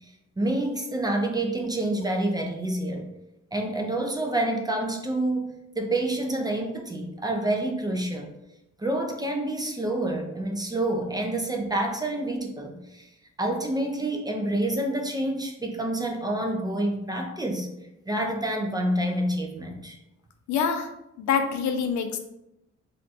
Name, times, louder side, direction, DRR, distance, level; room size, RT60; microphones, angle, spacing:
voice 1, 0.4-3.1 3.5-8.3 8.8-13.1 13.4-17.7 18.1-20.0, right 1 dB, 15° right, 2 dB, 0.4 m, -28 dB
voice 2, 20.5-20.9 21.2-22.2, left 6 dB, 70° left, 6 dB, 0.5 m, -25 dB
2.5 x 2.2 x 4.0 m, 0.87 s
cardioid pair, 90°, 30 cm